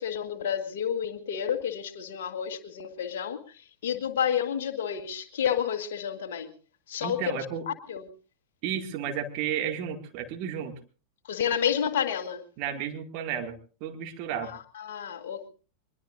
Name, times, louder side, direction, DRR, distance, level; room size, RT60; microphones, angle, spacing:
voice 1, 0.0-3.4 3.8-6.5 6.9-7.2 7.7-8.0 11.2-12.4 14.5-15.5, left 8 dB, 60° left, 6 dB, 1.7 m, -30 dB
voice 2, 7.0-7.7 8.6-10.8 12.6-13.6 13.8-14.5, right 8 dB, 45° right, 5 dB, 2.2 m, -32 dB
23.0 x 21.5 x 2.6 m, 0.39 s
figure-of-eight pair, 90°, 0 cm